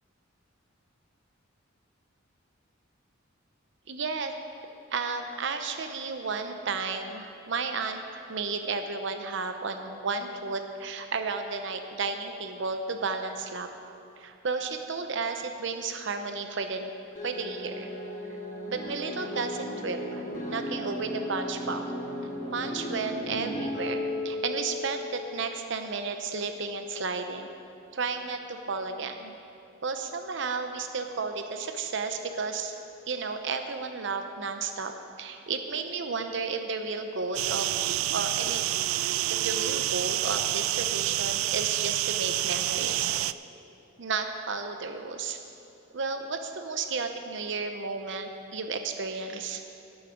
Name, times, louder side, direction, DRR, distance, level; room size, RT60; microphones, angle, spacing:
voice 1, 3.9-4.3 4.9-13.7 14.2-16.9 17.2-17.9 18.7-22.0 22.5-27.5 27.9-29.3 29.8-32.7 33.1-37.7 38.1-38.6 39.3-43.1 44.0-45.4 45.9-49.6, right 4 dB, 60° right, 6 dB, 0.7 m, -33 dB
sound 1, 17.1-25.6, left 1 dB, 40° left, 1.5 m, -35 dB
sound 2, 37.3-43.3, right 14 dB, 85° right, 0.3 m, -28 dB
17.5 x 7.1 x 5.1 m, 2.7 s
head